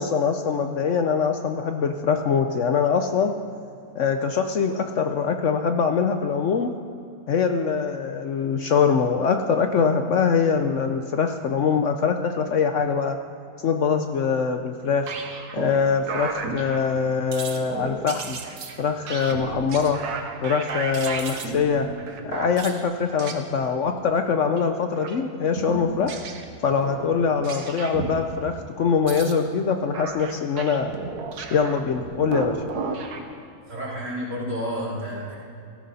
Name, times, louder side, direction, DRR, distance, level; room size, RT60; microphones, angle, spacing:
voice 1, 0.0-3.3 3.9-6.7 7.3-13.2 13.6-15.1 15.5-18.4 18.8-20.0 20.4-21.9 22.2-26.1 26.6-30.9 31.5-32.6, left 6 dB, 60° left, 6 dB, 0.9 m, -23 dB
sound 1, 14.7-15.8 16.1-17.1 17.3-22.8 23.2-23.4 24.4-24.6 24.9-25.2 25.6-28.2 28.9-33.2, right 4 dB, 85° right, 1.7 m, -34 dB
voice 2, 33.7-35.4, equal, 50° right, -6 dB, 3.7 m, -30 dB
16.5 x 13.5 x 4.1 m, 2.6 s
omnidirectional pair, 1.6 m